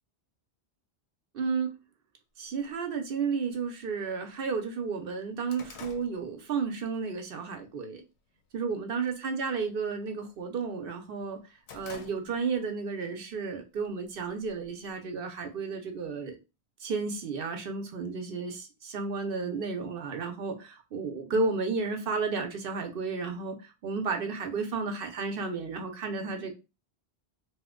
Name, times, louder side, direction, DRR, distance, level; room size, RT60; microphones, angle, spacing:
voice 1, 1.3-1.7 2.4-8.0 8.5-11.4 11.7-16.4 16.8-26.5, right 4 dB, 65° right, 0.7 m, -32 dB
sound 1, 3.6-3.7 4.2-4.3 4.6-7.0 7.4-7.7 8.2-8.7 8.9-9.3 9.6-10.8 11.2-12.7 13.0-13.1 14.0-14.9, left 5 dB, 90° left, 0.9 m, -50 dB
2.8 x 2.1 x 3.6 m
omnidirectional pair, 1.1 m